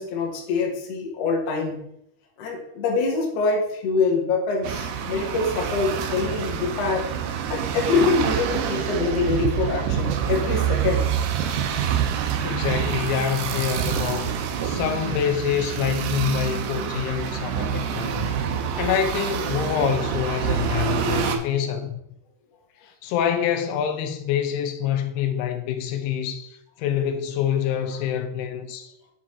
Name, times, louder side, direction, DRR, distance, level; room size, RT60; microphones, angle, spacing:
voice 1, 0.0-1.8 2.4-7.1 7.5-11.1, left 4 dB, 65° left, 1.7 m, -25 dB
sound 1, 4.6-21.4, right 8 dB, 80° right, 2.3 m, -26 dB
voice 2, 12.4-14.4 14.6-18.4 18.8-22.0 23.0-28.9, left 9 dB, 85° left, 2.7 m, -26 dB
6.4 x 5.0 x 4.2 m
omnidirectional pair, 4.6 m